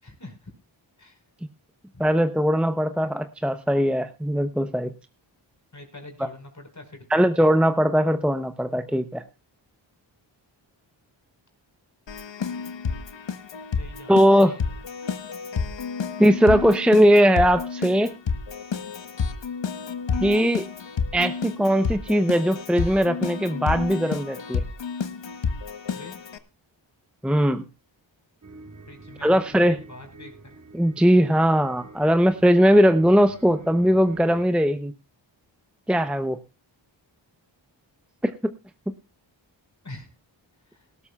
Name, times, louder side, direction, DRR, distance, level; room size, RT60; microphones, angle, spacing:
voice 1, 0.0-0.5 1.0-1.2 1.9-2.0 5.7-7.5 13.8-14.9 25.9-26.1 28.9-30.6 39.8-40.1 40.6-40.9, left 2 dB, 35° left, 4 dB, 4.9 m, -44 dB
voice 2, 2.0-4.9 7.1-9.2 14.1-14.6 16.2-18.1 20.2-20.7 21.1-24.6 27.2-27.6 29.2-29.8 30.7-34.9 35.9-36.4 38.2-38.5, equal, ahead, 9 dB, 0.7 m, -20 dB
Keyboard (musical), 12.1-26.4, left 5 dB, 65° left, 1.2 m, -30 dB
sound 1, 28.4-34.5, right 3 dB, 40° right, 2.0 m, -45 dB
18.5 x 13.0 x 2.4 m, 0.28 s
cardioid pair, 60°, 47 cm